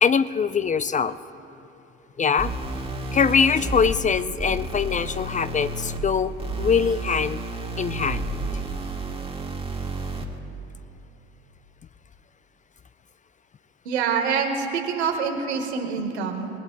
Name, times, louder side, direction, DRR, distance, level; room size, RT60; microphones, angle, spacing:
voice 1, 0.0-1.2 2.2-2.5 3.1-7.4 7.8-8.2, left 6 dB, 25° left, 14 dB, 0.5 m, -22 dB
sound 1, 2.4-10.4, right 2 dB, 20° right, 1.9 m, -31 dB
voice 2, 13.9-16.5, right 6 dB, 85° right, 4 dB, 1.7 m, -26 dB
26.5 x 19.5 x 2.3 m, 3.0 s
hypercardioid pair, 65°, 32 cm